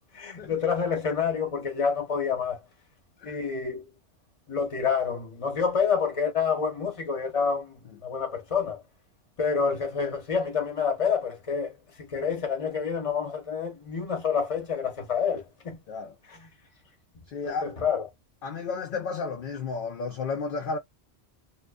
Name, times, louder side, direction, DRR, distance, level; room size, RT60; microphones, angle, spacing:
voice 1, 0.1-2.6 3.2-3.9 4.5-8.8 9.4-15.8 16.3-16.5 17.4-18.1, left 6 dB, 35° left, 0.8 m, -28 dB
voice 2, 17.3-17.7 18.4-20.8, left 4 dB, 60° left, 0.7 m, -32 dB
2.4 x 2.3 x 2.2 m
omnidirectional pair, 1.1 m